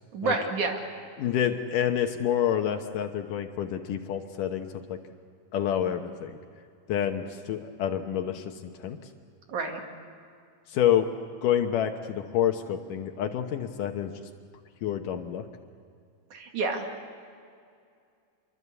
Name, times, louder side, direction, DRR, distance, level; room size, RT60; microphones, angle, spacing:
voice 1, 0.1-0.8 9.5-9.8 16.3-16.9, right 4 dB, 65° right, 3 dB, 3.7 m, -29 dB
voice 2, 1.2-5.0 5.5-6.4 6.9-8.5 8.8-9.0 10.7-11.1 11.4-14.2 14.8-15.5, left 10 dB, 75° left, 5 dB, 2.6 m, -28 dB
27.0 x 24.0 x 8.3 m, 2.3 s
omnidirectional pair, 3.8 m